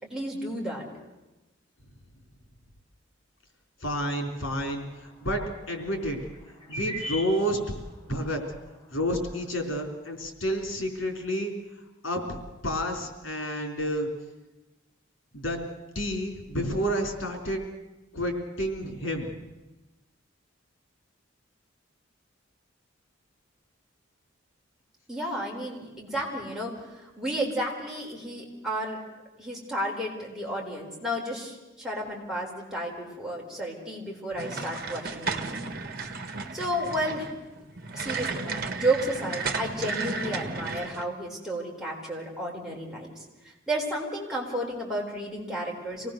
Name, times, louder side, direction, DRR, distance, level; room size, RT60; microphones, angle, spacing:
voice 1, 0.0-0.8 25.1-26.7 27.2-29.0 29.4-35.7 36.5-37.3 37.9-43.1 43.7-46.1, right 1 dB, 5° right, -3 dB, 4.2 m, -32 dB
voice 2, 3.8-6.2 6.7-7.8 8.1-8.4 8.9-11.5 12.0-14.1 15.3-15.6 16.0-17.6 18.1-19.5, equal, 90° left, 4 dB, 4.0 m, -30 dB
sound 1, 4.9-5.0 6.4-8.0 8.5-8.6 8.9-9.4, equal, 25° left, 5.1 m, -37 dB
sound 2, 34.4-41.0, right 4 dB, 50° right, 1.6 m, -34 dB
25.5 x 18.5 x 6.7 m, 1.1 s
head